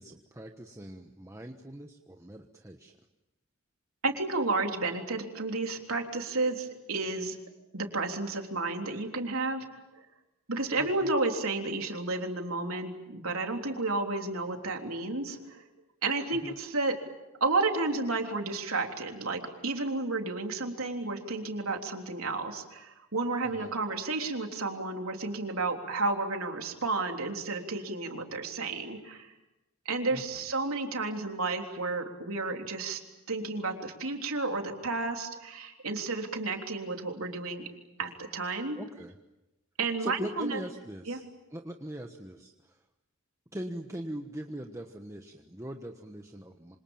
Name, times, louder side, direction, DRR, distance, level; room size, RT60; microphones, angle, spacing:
voice 1, 0.0-3.0 10.8-11.1 16.3-16.6 23.6-23.7 30.1-30.4 38.8-39.2 40.0-42.8 43.5-46.8, right 1 dB, 15° right, 4 dB, 1.2 m, -41 dB
voice 2, 4.0-7.4 7.7-9.7 10.5-15.6 16.0-16.9 17.4-29.3 29.9-33.0 33.3-37.6 38.0-38.8 39.8-40.6 41.1-41.2, right 3 dB, 90° right, 3 dB, 3.5 m, -32 dB
27.0 x 26.0 x 7.3 m, 0.97 s
head